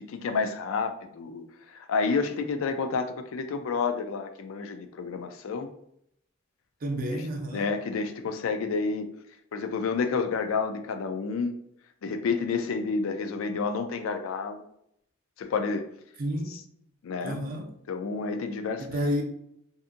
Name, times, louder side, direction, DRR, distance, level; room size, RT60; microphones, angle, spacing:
voice 1, 0.0-1.4 1.7-5.7 7.5-9.1 9.5-11.5 12.0-14.6 15.4-15.9 17.0-17.4 17.9-18.9, left 4 dB, 80° left, 0.4 m, -29 dB
voice 2, 6.8-7.7 16.2-16.5 17.2-17.7 18.8-19.2, equal, 45° right, 0.5 m, -30 dB
2.7 x 2.5 x 2.5 m
head